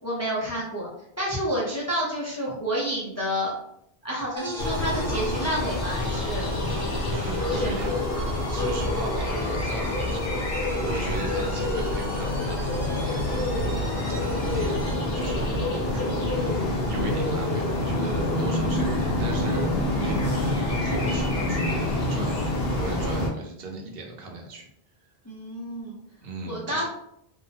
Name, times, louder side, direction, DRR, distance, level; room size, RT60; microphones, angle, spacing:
voice 1, 0.0-0.9 1.2-3.5 4.0-6.5 7.5-7.9 25.3-26.0 26.4-26.9, equal, 20° left, -6 dB, 0.5 m, -29 dB
sound 1, 4.4-15.1, equal, 25° right, 0.8 m, -38 dB
sound 2, 4.6-23.3, left 1 dB, 75° left, 0.9 m, -27 dB
voice 2, 6.6-14.1 14.4-14.8 15.1-19.7 20.0-20.2 20.5-24.7 26.2-26.9, right 2 dB, 70° right, 1 dB, 0.8 m, -37 dB
2.7 x 2.0 x 2.6 m, 0.74 s
omnidirectional pair, 1.0 m